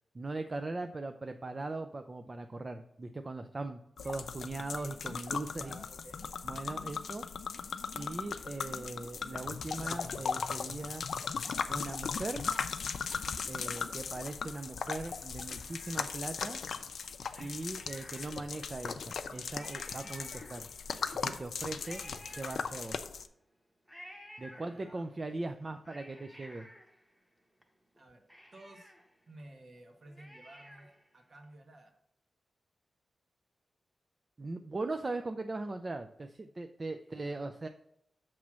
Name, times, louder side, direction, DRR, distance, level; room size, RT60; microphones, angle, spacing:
voice 1, 0.1-5.8 6.4-7.2 7.6-11.0 11.7-12.4 13.5-16.6 17.4-20.7 21.1-23.0 24.4-26.7 34.4-37.7, right 2 dB, 30° right, 7 dB, 0.3 m, -40 dB
sound 1, 4.0-23.3, left 6 dB, 75° left, 0.4 m, -38 dB
voice 2, 5.5-6.2 21.9-22.1 24.5-25.4 28.0-28.2 28.5-28.9 29.3-31.9 37.1-37.5, right 1 dB, 50° right, 4 dB, 1.0 m, -54 dB
Cat, 15.0-16.5 17.3-18.7 19.2-19.3 19.5-21.0 21.8-23.2 23.9-25.2 25.6-27.6 28.0-28.1 28.3-31.1 31.4-31.5, equal, 5° right, 0.9 m, -54 dB
7.2 x 3.1 x 6.0 m, 0.76 s
wide cardioid pair, 140°, 0 cm